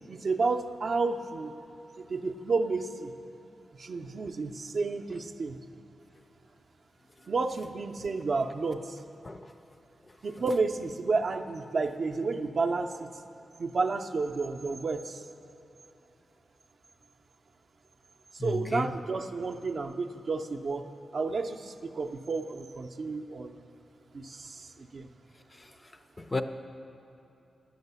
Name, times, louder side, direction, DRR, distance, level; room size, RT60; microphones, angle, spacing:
voice 1, 0.1-1.5 2.0-3.1 3.8-5.6 7.3-9.0 10.2-13.1 13.6-15.2 18.3-20.9 21.1-23.6 24.1-25.1, right 4 dB, 45° right, 5 dB, 0.5 m, -31 dB
voice 2, 18.4-18.9 26.2-26.4, left 2 dB, 20° left, 8 dB, 0.4 m, -32 dB
10.5 x 6.3 x 8.1 m, 3.0 s
wide cardioid pair, 140°, 0 cm